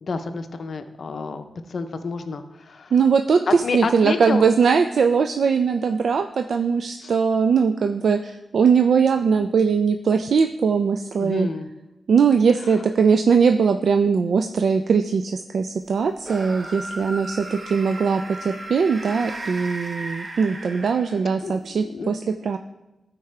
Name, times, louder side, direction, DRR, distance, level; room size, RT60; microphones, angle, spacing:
voice 1, 0.0-2.9 3.5-4.5 7.0-7.1 11.2-11.7 21.4-22.1, left 4 dB, 55° left, 8 dB, 0.6 m, -29 dB
voice 2, 2.9-11.5 12.1-22.6, right 5 dB, 70° right, 6 dB, 0.3 m, -20 dB
sound 1, 16.2-21.4, right 2 dB, 30° right, 0.7 m, -36 dB
13.0 x 4.7 x 3.2 m, 1.0 s
wide cardioid pair, 155°, 0 cm